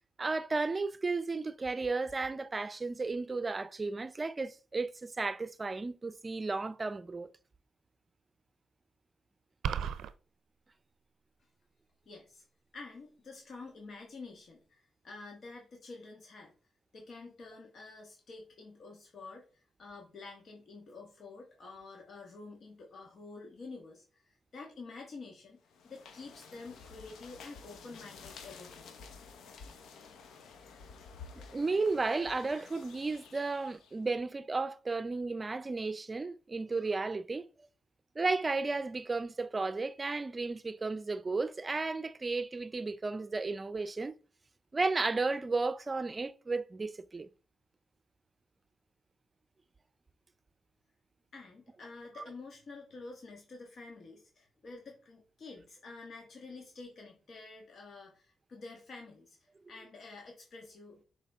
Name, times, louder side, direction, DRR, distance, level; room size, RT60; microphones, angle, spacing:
voice 1, 0.2-7.3 31.5-37.5 38.2-44.2 44.7-47.3, right 3 dB, 30° right, 0.5 m, -33 dB
sound 1, 9.6-10.1, right 8 dB, 90° right, 0.4 m, -33 dB
voice 2, 12.0-12.4 12.7-16.5 16.9-28.9 51.3-61.1, left 3 dB, 60° left, 1.5 m, -49 dB
sound 2, 25.6-34.1, left 5 dB, 85° left, 1.0 m, -52 dB
6.7 x 4.4 x 3.6 m
cardioid pair, 70°, 0 cm